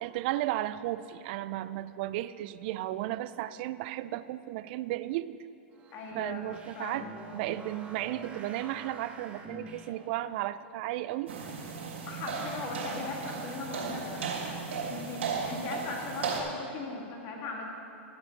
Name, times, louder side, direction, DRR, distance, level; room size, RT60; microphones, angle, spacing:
voice 1, 0.0-5.4 6.1-7.1 7.3-11.3, right 15 dB, 55° right, 15 dB, 0.4 m, -34 dB
sound 1, 5.8-10.2, right 2 dB, 15° right, 1.4 m, -46 dB
voice 2, 5.9-6.5 6.8-7.1 12.1-14.2 14.6-17.6, left 3 dB, 45° left, 0 dB, 2.1 m, -39 dB
sound 2, 11.3-16.4, right 5 dB, 90° right, 2.7 m, -36 dB
13.0 x 7.8 x 5.3 m, 2.8 s
hypercardioid pair, 120°, 6 cm